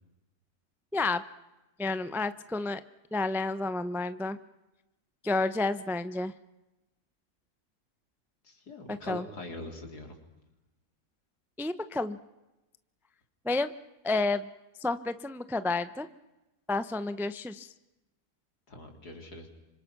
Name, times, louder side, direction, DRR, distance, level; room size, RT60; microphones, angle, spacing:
voice 1, 0.9-1.2 1.8-2.8 3.1-4.4 5.2-6.3 8.9-9.2 11.6-12.2 13.4-13.7 14.0-14.5 14.8-16.1 16.7-17.7, left 3 dB, ahead, 12 dB, 0.6 m, -30 dB
voice 2, 8.4-10.2 18.7-19.5, left 2 dB, 75° left, 3 dB, 4.4 m, -43 dB
29.5 x 26.0 x 6.1 m, 1.0 s
omnidirectional pair, 1.7 m